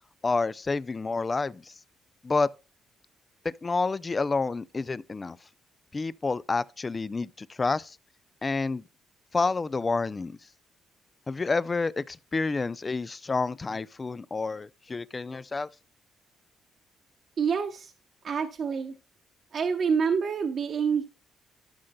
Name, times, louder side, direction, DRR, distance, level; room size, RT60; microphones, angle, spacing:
voice 1, 0.2-1.7 2.2-2.5 3.4-5.4 5.9-8.0 8.4-8.8 9.3-10.4 11.3-15.7, left 3 dB, 30° left, 0.3 m, -29 dB
voice 2, 17.4-17.9 18.2-18.9 19.5-21.0, right 6 dB, 55° right, 0.9 m, -27 dB
12.5 x 6.4 x 2.2 m
cardioid pair, 90°, 0 cm